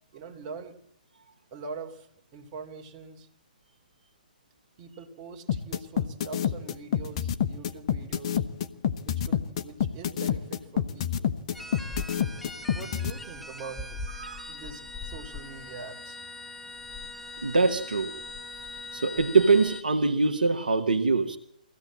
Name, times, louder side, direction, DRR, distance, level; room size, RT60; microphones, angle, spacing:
voice 1, 0.1-0.8 1.5-3.3 4.8-8.5 9.1-11.3 12.7-14.0 14.5-16.2, right 5 dB, 35° right, 3 dB, 3.2 m, -43 dB
sound 1, 5.5-13.1, left 9 dB, 45° left, 1.3 m, -27 dB
sound 2, 11.5-19.8, left 2 dB, ahead, 1.2 m, -40 dB
voice 2, 14.2-14.5 17.4-18.1 18.9-21.4, right 4 dB, 75° right, 6 dB, 1.7 m, -23 dB
23.5 x 16.5 x 7.6 m, 0.71 s
figure-of-eight pair, 125°, 5 cm